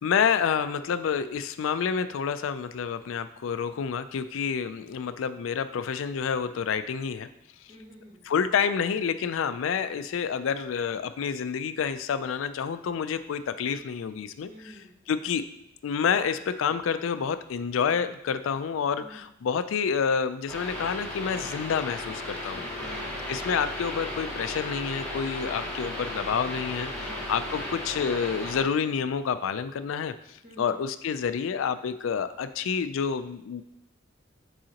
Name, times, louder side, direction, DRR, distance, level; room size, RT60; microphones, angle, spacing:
voice 1, 0.0-7.3 8.2-15.4 15.8-22.6 23.3-33.6, left 6 dB, 80° left, 12 dB, 0.4 m, -28 dB
voice 2, 7.7-8.2 14.5-14.9 19.0-19.3 22.5-23.2 26.9-27.3 30.4-30.8, right 1 dB, 35° right, -4 dB, 1.7 m, -48 dB
sound 1, 20.5-28.6, left 1 dB, 10° left, 1.6 m, -35 dB
7.6 x 4.8 x 2.9 m, 0.79 s
head